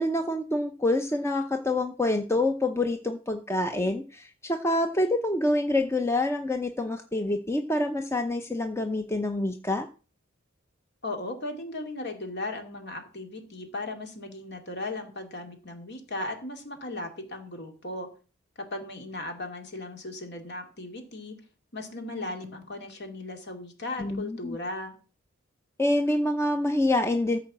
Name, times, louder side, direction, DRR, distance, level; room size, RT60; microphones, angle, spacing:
voice 1, 0.0-9.9 24.0-24.6 25.8-27.4, left 1 dB, 15° left, 6 dB, 0.7 m, -26 dB
voice 2, 11.0-18.1 18.7-21.3 21.7-25.0, left 2 dB, 55° left, 4 dB, 2.5 m, -37 dB
14.0 x 4.8 x 7.3 m, 0.37 s
head